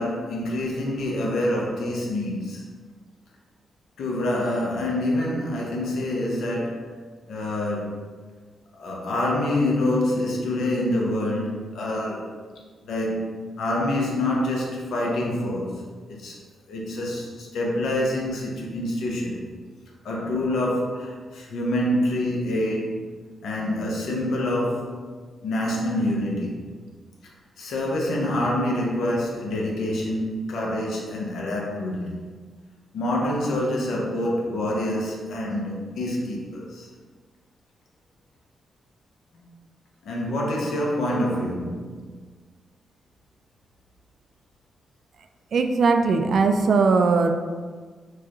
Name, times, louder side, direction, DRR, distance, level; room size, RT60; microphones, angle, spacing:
voice 1, 0.0-2.6 4.0-6.9 7.3-8.0 8.8-12.3 12.8-16.4 16.7-19.5 20.0-23.1 23.4-25.0 25.4-26.6 27.6-32.2 32.9-36.9 39.3-39.4 40.0-42.1, left 1 dB, 80° left, -2 dB, 0.8 m, -26 dB
voice 2, 45.5-47.3, right 4 dB, 65° right, 6 dB, 0.3 m, -19 dB
4.7 x 2.4 x 2.9 m, 1.5 s
cardioid pair, 85°, 0 cm